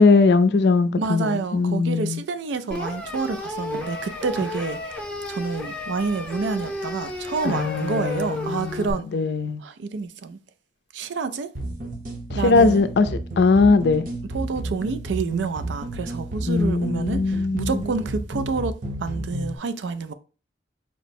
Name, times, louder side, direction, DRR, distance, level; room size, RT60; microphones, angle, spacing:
voice 1, 0.0-2.2 7.5-9.6 12.4-13.1 13.4-14.0 16.5-17.7, left 4 dB, 70° left, 0.4 m, -20 dB
voice 2, 1.0-4.8 5.3-9.1 9.6-10.4 10.9-11.5 12.3-12.8 14.3-18.7 19.0-20.1, right 4 dB, 90° right, 0.4 m, -28 dB
sound 1, 2.7-8.9, left 2 dB, 5° left, 0.6 m, -33 dB
sound 2, 11.5-19.6, right 1 dB, 45° right, 0.7 m, -32 dB
4.4 x 2.0 x 4.1 m
head